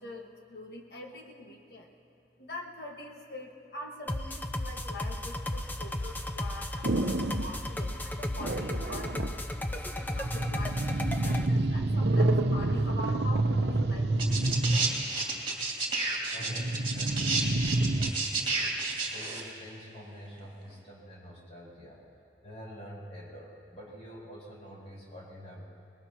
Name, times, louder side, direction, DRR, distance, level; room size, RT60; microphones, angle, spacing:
voice 1, 0.0-1.9 2.4-9.2 9.7-14.1 14.6-15.0, left 2 dB, 60° left, 0 dB, 1.6 m, -44 dB
sound 1, 4.1-11.5, left 1 dB, 10° left, 0.5 m, -34 dB
sound 2, 6.8-7.5 8.4-9.4 10.1-15.0 16.4-18.1, right 2 dB, 70° right, 0.8 m, -28 dB
sound 3, 14.2-19.4 20.4-20.5, right 3 dB, 30° right, 2.5 m, -31 dB
voice 2, 16.3-17.3 17.9-18.8 19.1-22.0 22.4-25.6, equal, 40° left, -5 dB, 4.8 m, -47 dB
23.5 x 21.0 x 3.0 m, 2.9 s
head